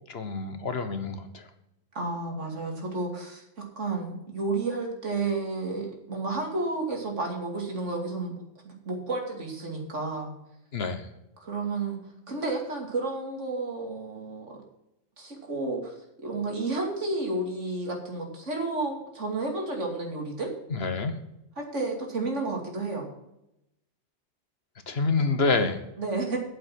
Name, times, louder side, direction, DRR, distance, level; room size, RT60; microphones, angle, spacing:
voice 1, 0.1-1.5 10.7-11.1 20.7-21.1 24.9-25.8, left 3 dB, 55° left, 8 dB, 1.4 m, -27 dB
voice 2, 1.9-8.4 8.6-10.3 11.4-12.0 12.3-14.6 15.2-15.9 16.2-20.5 21.6-23.0 25.1-25.2 26.0-26.4, right 3 dB, 75° right, 1 dB, 3.0 m, -31 dB
9.4 x 7.5 x 7.6 m, 0.84 s
omnidirectional pair, 1.2 m